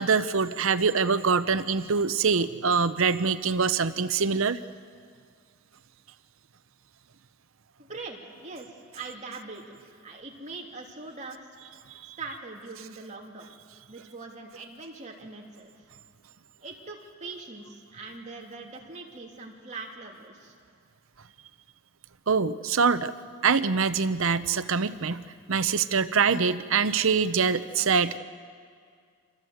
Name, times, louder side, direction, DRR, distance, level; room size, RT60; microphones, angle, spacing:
voice 1, 0.0-4.6 12.0-12.2 22.3-23.1 23.4-25.2 25.5-28.2, right 5 dB, 70° right, 12 dB, 0.8 m, -24 dB
voice 2, 7.8-9.6 9.9-11.4 12.2-13.5 13.9-15.7 16.6-20.5, right 3 dB, 35° right, 0 dB, 3.0 m, -42 dB
28.5 x 26.0 x 8.0 m, 2.1 s
head